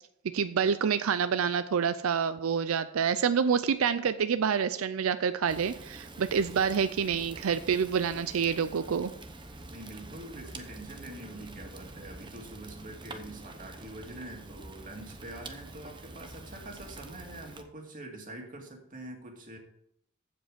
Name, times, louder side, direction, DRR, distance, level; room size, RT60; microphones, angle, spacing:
voice 1, 0.3-9.1, right 6 dB, 85° right, 12 dB, 0.5 m, -27 dB
Fire, 5.5-17.6, right 2 dB, 25° right, 0.9 m, -46 dB
voice 2, 9.7-19.6, right 1 dB, 40° right, 1 dB, 2.3 m, -45 dB
15.0 x 5.3 x 5.0 m, 0.72 s
head